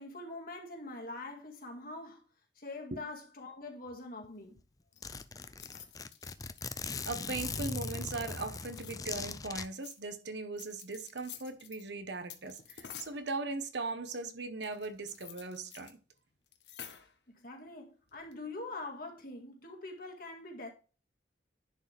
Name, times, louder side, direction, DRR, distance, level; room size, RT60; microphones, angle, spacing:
voice 1, 0.0-2.2 2.6-4.6 17.3-20.7, left 2 dB, 55° left, 2.1 m, -44 dB
Zipper (clothing), 4.2-4.3 4.6-4.7 5.0-9.7, left 4 dB, 20° left, 0.5 m, -39 dB
sound 1, 4.9-7.8 8.6-10.0 10.6-11.8 12.3-13.2 14.6-15.9 16.2-16.3 16.5-17.2 18.1-18.4, left 9 dB, 70° left, 1.3 m, -51 dB
voice 2, 6.9-16.0, right 3 dB, 70° right, 1.1 m, -39 dB
10.5 x 4.9 x 3.4 m
head